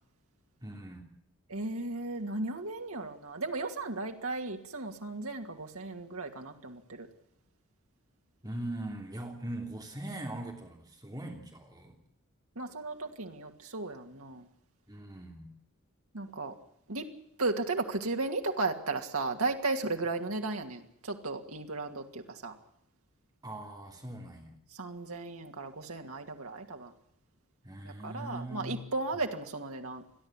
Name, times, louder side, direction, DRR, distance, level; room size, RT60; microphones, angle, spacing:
voice 1, 0.6-1.1 8.4-12.0 14.9-15.5 23.4-24.5 27.6-28.8, right 1 dB, 20° right, 3 dB, 3.0 m, -41 dB
voice 2, 1.5-7.1 12.6-14.4 16.1-16.5 16.9-17.1 17.4-22.5 24.8-26.9 27.8-30.0, right 3 dB, 85° right, 3 dB, 2.5 m, -35 dB
29.0 x 11.0 x 9.9 m, 0.74 s
head